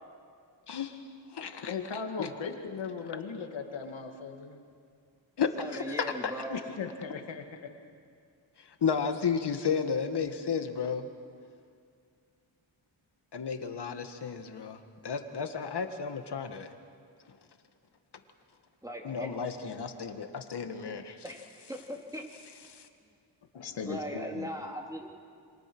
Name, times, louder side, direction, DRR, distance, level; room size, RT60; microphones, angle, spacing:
voice 1, 0.7-1.0 1.3-1.7 2.2-2.3 3.0-3.2 5.4-5.5 5.7-5.8 6.2-6.3 8.8-11.1 13.3-16.7 19.0-21.2 22.7-22.9, left 6 dB, 65° left, 7 dB, 2.0 m, -33 dB
voice 2, 1.6-4.6 6.5-7.7 23.5-24.5, left 5 dB, 90° left, 4 dB, 2.3 m, -38 dB
voice 3, 5.4-6.6 18.8-19.3 21.2-22.2 23.8-25.1, equal, 10° right, 1 dB, 3.3 m, -39 dB
28.0 x 25.0 x 6.3 m, 2.3 s
cardioid pair, 70°, 44 cm